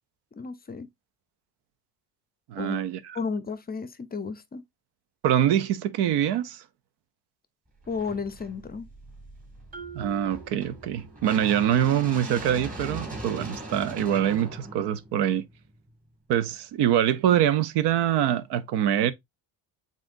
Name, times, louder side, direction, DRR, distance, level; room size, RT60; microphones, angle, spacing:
voice 1, 0.4-0.9 2.6-2.8 3.1-4.6 7.9-8.9, left 5 dB, 25° left, 0.5 m, -33 dB
voice 2, 2.5-3.2 5.2-6.6 9.9-15.5 16.3-19.1, right 10 dB, 75° right, 0.7 m, -24 dB
sound 1, 7.8-15.9, right 1 dB, 20° right, 2.2 m, -40 dB
Marimba xylophone, 9.7-11.5, right 6 dB, 55° right, 3.1 m, -45 dB
7.5 x 2.6 x 2.5 m
supercardioid pair, 85°, 42 cm